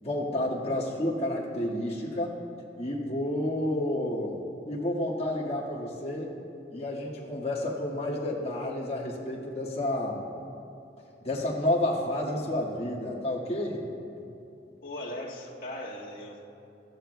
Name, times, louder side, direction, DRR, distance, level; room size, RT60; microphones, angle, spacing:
voice 1, 0.0-2.3 2.8-4.4 4.7-6.3 6.7-10.2 11.2-13.8, left 1 dB, 35° left, -5 dB, 1.8 m, -30 dB
voice 2, 14.8-16.4, left 1 dB, 55° left, -4 dB, 1.7 m, -38 dB
20.0 x 14.0 x 2.2 m, 2.8 s
head